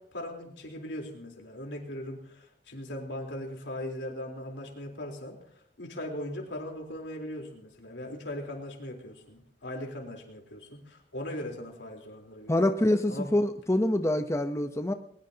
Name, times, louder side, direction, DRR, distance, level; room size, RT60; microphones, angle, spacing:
voice 1, 0.0-5.4 5.8-12.7 13.1-13.3, left 1 dB, 85° left, 1 dB, 3.8 m, -39 dB
voice 2, 12.5-14.9, left 1 dB, 15° left, 7 dB, 0.8 m, -25 dB
21.5 x 20.0 x 2.9 m, 0.67 s
head